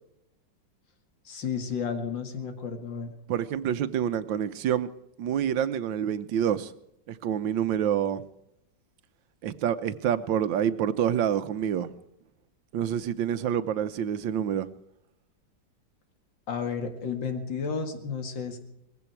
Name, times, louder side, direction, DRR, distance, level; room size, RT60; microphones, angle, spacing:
voice 1, 1.2-3.1 16.5-18.6, left 6 dB, 75° left, 6 dB, 2.7 m, -32 dB
voice 2, 3.3-4.9 5.2-6.7 7.1-8.2 9.4-11.9 12.7-14.7, right 9 dB, 80° right, 13 dB, 1.5 m, -27 dB
20.0 x 15.5 x 4.6 m, 0.84 s
omnidirectional pair, 2.1 m